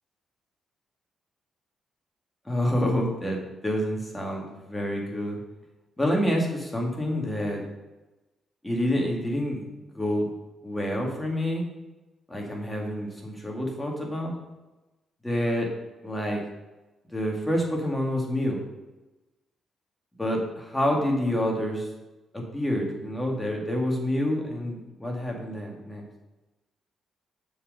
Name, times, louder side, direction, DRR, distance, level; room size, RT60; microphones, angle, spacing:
voice 1, 2.5-5.4 6.0-7.7 8.6-9.6 9.9-10.3 10.6-11.6 12.3-14.3 15.2-15.7 16.0-16.4 17.1-18.6 20.2-21.9 22.3-26.0, equal, 10° left, -1 dB, 2.1 m, -28 dB
7.1 x 4.8 x 6.4 m, 1.1 s
cardioid pair, 105°, 0 cm